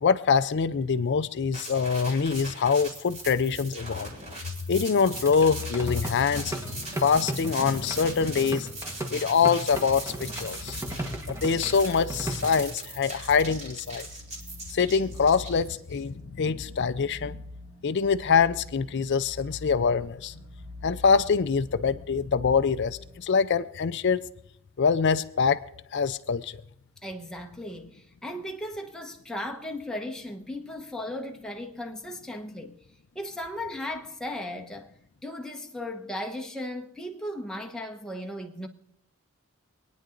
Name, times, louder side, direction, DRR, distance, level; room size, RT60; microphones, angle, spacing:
voice 1, 0.0-4.1 4.7-8.7 9.1-10.8 11.3-14.1 14.7-17.4 17.8-20.4 20.8-24.2 24.8-25.6 25.9-26.6, left 5 dB, 55° left, 0.4 m, -24 dB
sound 1, 1.5-16.0, right 2 dB, 30° right, 2.5 m, -40 dB
sound 2, 5.1-12.6, right 1 dB, 15° right, 1.2 m, -37 dB
sound 3, 9.8-23.2, left 2 dB, 50° right, 2.4 m, -45 dB
voice 2, 27.0-32.7 33.1-34.9 35.2-38.7, left 1 dB, 5° left, 0.9 m, -36 dB
25.5 x 9.4 x 3.8 m
head